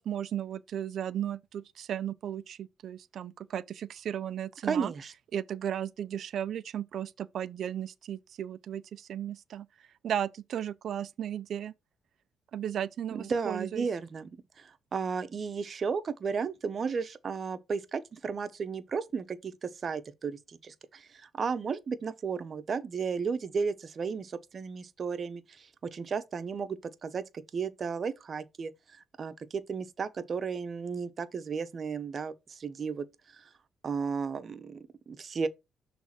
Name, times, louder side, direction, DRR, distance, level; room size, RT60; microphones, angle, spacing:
voice 1, 0.0-4.9 5.3-9.7 10.0-11.7 12.5-13.9, right 10 dB, 65° right, 0.5 m, -35 dB
voice 2, 4.6-5.1 13.1-14.3 14.6-28.7 29.2-33.1 33.3-33.4 33.8-35.5, right 5 dB, 45° right, 0.9 m, -34 dB
6.3 x 3.4 x 5.9 m
cardioid pair, 90°, 0 cm